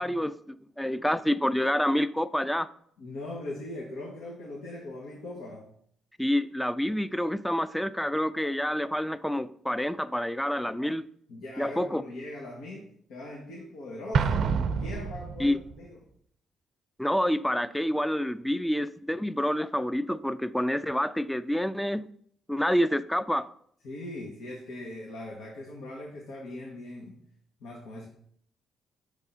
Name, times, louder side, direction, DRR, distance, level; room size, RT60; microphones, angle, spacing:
voice 1, 0.0-2.7 6.2-11.0 11.6-12.0 15.4-15.6 17.0-22.1 22.5-23.5, equal, 5° left, 15 dB, 0.4 m, -28 dB
voice 2, 3.0-5.7 11.3-14.5 14.8-16.0 23.8-27.2 27.6-28.1, left 1 dB, 90° left, -1 dB, 1.2 m, -40 dB
Explosion, 14.1-15.8, right 6 dB, 65° right, 0.5 m, -27 dB
6.4 x 3.6 x 5.5 m, 0.64 s
cardioid pair, 90°, 0 cm